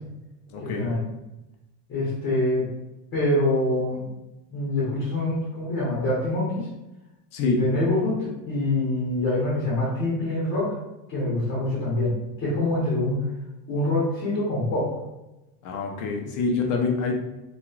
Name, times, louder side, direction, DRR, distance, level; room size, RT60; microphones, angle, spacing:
voice 1, 0.5-1.0 7.3-7.6 15.6-17.1, left 4 dB, 45° left, 2 dB, 0.5 m, -26 dB
voice 2, 1.9-2.7 3.1-4.1 4.5-6.7 7.6-10.7 11.1-12.1 12.4-13.2 13.7-14.9, left 1 dB, 25° left, -7 dB, 0.9 m, -25 dB
2.9 x 2.3 x 2.4 m, 0.96 s
supercardioid pair, 145°, 44 cm